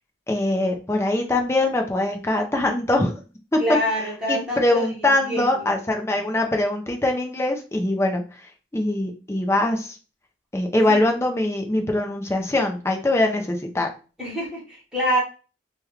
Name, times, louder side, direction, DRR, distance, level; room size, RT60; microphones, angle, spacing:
voice 1, 0.3-3.1 3.5-3.6 4.0-10.0 10.5-13.9, left 1 dB, 15° left, 3 dB, 0.5 m, -23 dB
voice 2, 3.6-5.5 10.9-11.0 14.2-15.2, equal, 5° right, -7 dB, 1.4 m, -26 dB
3.4 x 2.3 x 3.1 m, 0.34 s
head